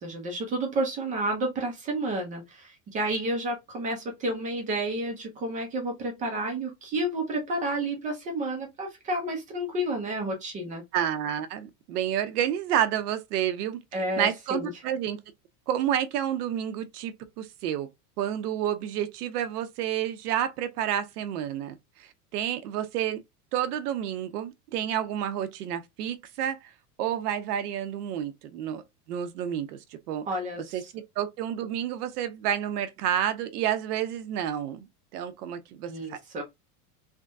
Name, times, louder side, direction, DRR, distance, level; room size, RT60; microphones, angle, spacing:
voice 1, 0.0-10.8 13.9-14.7 30.3-30.7 35.9-36.4, right 1 dB, 15° right, 0.5 m, -30 dB
voice 2, 10.9-13.8 14.2-15.2 15.7-17.9 18.2-23.2 23.5-26.7 27.0-28.8 29.1-29.8 30.1-30.3 30.7-34.9 35.1-36.2, right 10 dB, 70° right, 0.8 m, -30 dB
3.5 x 2.2 x 2.5 m
supercardioid pair, 160°, 47 cm